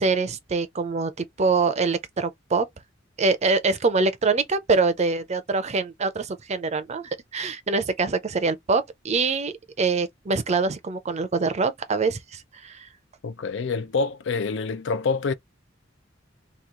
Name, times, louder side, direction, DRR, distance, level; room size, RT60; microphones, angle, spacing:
voice 1, 0.0-2.7 3.2-12.9, right 4 dB, 35° right, 0.5 m, -24 dB
voice 2, 13.2-15.3, left 4 dB, 65° left, 0.5 m, -26 dB
3.0 x 2.4 x 3.6 m
head